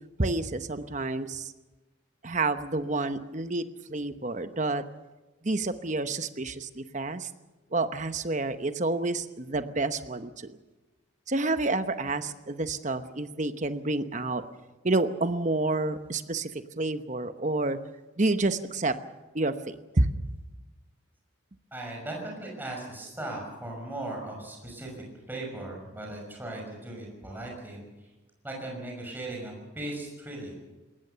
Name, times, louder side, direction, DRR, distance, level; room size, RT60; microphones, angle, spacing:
voice 1, 0.2-1.5 2.2-3.6 3.9-4.8 5.4-7.3 7.7-10.6 11.3-14.4 14.8-16.5 16.8-17.8 18.2-18.9 19.3-20.1, right 2 dB, 35° right, 10 dB, 1.0 m, -29 dB
voice 2, 21.7-24.9 25.3-27.8 28.4-30.5, right 2 dB, 10° right, -1 dB, 5.9 m, -38 dB
21.5 x 19.0 x 6.9 m, 1.1 s
head